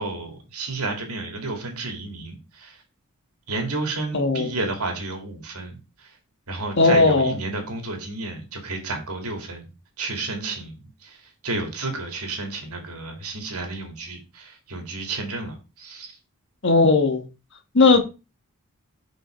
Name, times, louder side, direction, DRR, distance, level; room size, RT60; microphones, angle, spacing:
voice 1, 0.0-2.8 3.5-6.1 6.5-9.7 10.0-16.2, right 3 dB, 90° right, 2.5 m, -31 dB
voice 2, 4.1-4.5 6.8-7.3 16.6-17.2 17.7-18.0, left 3 dB, 55° left, 1.3 m, -17 dB
6.1 x 5.5 x 5.1 m
head